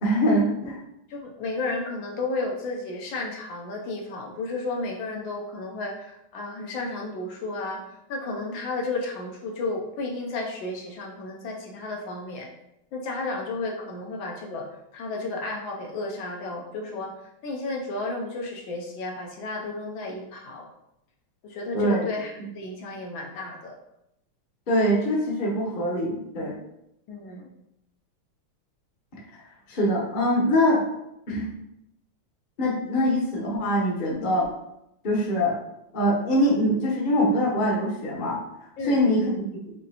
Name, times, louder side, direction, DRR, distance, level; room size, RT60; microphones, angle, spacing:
voice 1, 0.0-0.8 21.7-22.0 24.7-26.5 29.3-29.4 29.7-30.8 31.3-31.5 32.6-34.5 35.0-35.5 35.9-38.4 38.9-39.4, equal, 40° left, -3 dB, 0.7 m, -23 dB
voice 2, 1.1-7.8 8.1-12.5 12.9-14.7 14.9-17.1 17.4-20.6 21.4-23.8 27.1-27.5 38.8-39.2, left 2 dB, 75° left, 0 dB, 1.4 m, -32 dB
5.2 x 3.1 x 2.8 m, 0.82 s
omnidirectional pair, 2.3 m